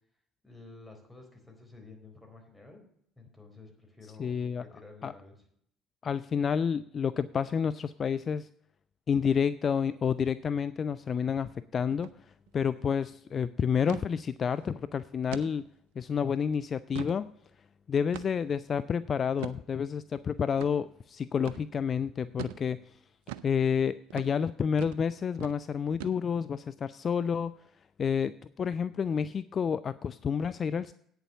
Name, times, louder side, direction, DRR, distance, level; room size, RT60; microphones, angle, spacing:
voice 1, 0.4-2.8 3.2-5.4, left 3 dB, 5° left, 1 dB, 4.1 m, -51 dB
voice 2, 4.2-4.6 5.0-5.1 6.0-8.5 9.1-12.1 12.5-15.7 16.0-17.3 17.9-22.9 23.4-27.5 28.0-30.9, left 7 dB, 40° left, 15 dB, 0.3 m, -29 dB
sound 1, 11.9-12.2 12.5-12.6 12.9-13.2 13.9-14.1 14.6-14.7 15.3-15.5 16.0-16.1 16.7-17.2 18.1-18.5 19.4-19.6 20.6-20.7 21.4-21.6 22.4-22.6 23.3-23.5 24.1-24.3 24.8-25.0 25.3-25.6 26.0-26.5, right 13 dB, 75° right, 0.5 m, -41 dB
8.9 x 6.9 x 7.0 m, 0.69 s
hypercardioid pair, 60°, 0 cm